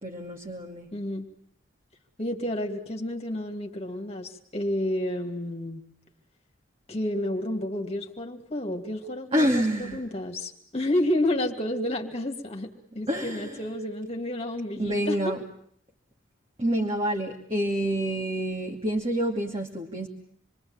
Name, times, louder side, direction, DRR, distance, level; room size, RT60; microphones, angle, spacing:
voice 1, 0.0-0.9 9.3-10.0 13.1-13.6 14.8-15.4 16.6-20.1, equal, 30° right, -1 dB, 2.6 m, -27 dB
voice 2, 0.9-1.3 2.2-5.8 6.9-15.4, left 1 dB, 30° left, 3 dB, 2.7 m, -30 dB
27.5 x 24.0 x 8.9 m, 0.63 s
head